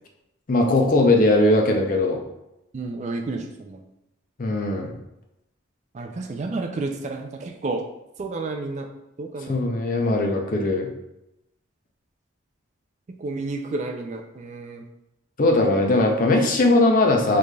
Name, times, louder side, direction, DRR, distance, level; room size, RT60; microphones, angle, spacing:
voice 1, 0.5-2.2 4.4-4.9 9.5-10.9 15.4-17.4, left 2 dB, 40° left, 2 dB, 0.5 m, -19 dB
voice 2, 2.7-3.8 5.9-7.8 8.2-8.9 9.2-9.6 13.2-14.8, right 3 dB, 35° right, 3 dB, 0.3 m, -31 dB
3.9 x 3.2 x 2.2 m, 0.89 s
head